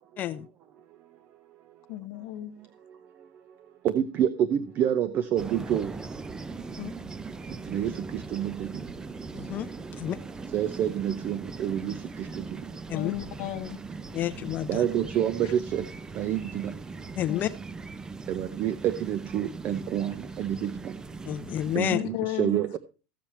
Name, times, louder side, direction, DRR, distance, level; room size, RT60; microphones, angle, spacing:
voice 1, 1.9-2.5 12.9-13.8 15.4-15.5 17.3-17.5 21.9-22.6, left 15 dB, 55° left, 1.2 m, -34 dB
voice 2, 2.5-3.3 3.8-5.9 7.6-8.9 10.5-12.7 14.7-15.9 16.1-16.7 18.3-21.0 21.7-22.8, right 10 dB, 35° right, 0.8 m, -28 dB
sound 1, 5.4-21.8, right 4 dB, 10° right, 0.5 m, -40 dB
voice 3, 9.3-9.7 10.0-10.2 12.9-13.1 14.1-14.8 17.2-17.5 21.3-22.0, left 12 dB, 35° left, 0.7 m, -29 dB
15.0 x 7.3 x 4.4 m
supercardioid pair, 140°, 6 cm